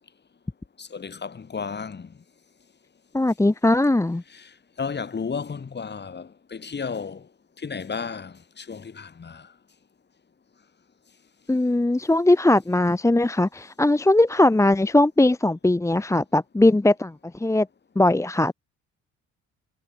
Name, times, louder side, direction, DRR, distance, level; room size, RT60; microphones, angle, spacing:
voice 1, 0.8-2.2 4.3-7.3 7.6-9.5, left 5 dB, 35° left, 2.9 m, -33 dB
voice 2, 3.1-4.2 11.5-17.7 18.0-18.5, left 2 dB, 10° left, 0.9 m, -20 dB
cardioid pair, 90°, 30 cm